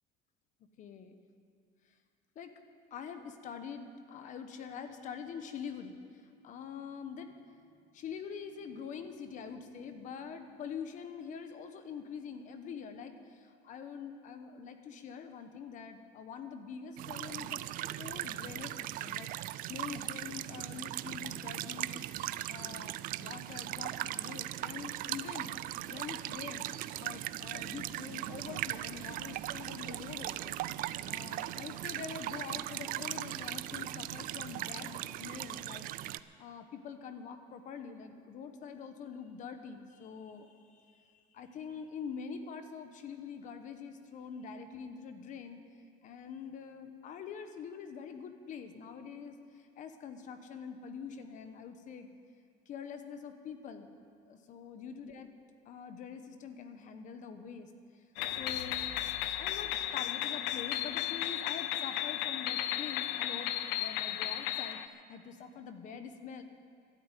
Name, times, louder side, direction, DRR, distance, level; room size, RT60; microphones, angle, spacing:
voice 1, 0.8-1.1 2.3-2.5 2.9-6.0 6.4-7.6 7.9-17.6 18.0-22.0 22.5-22.9 23.2-26.7 27.0-30.6 31.1-36.1 36.4-45.6 46.0-52.1 52.7-53.9 54.3-55.3 55.6-58.0 58.3-58.9 59.4-66.4, left 6 dB, 45° left, 8 dB, 1.1 m, -45 dB
sound 1, 17.0-36.2, right 15 dB, 50° right, 0.4 m, -39 dB
sound 2, 58.2-64.9, left 12 dB, 90° left, 0.6 m, -34 dB
12.5 x 9.8 x 9.1 m, 2.2 s
cardioid pair, 155°, 18 cm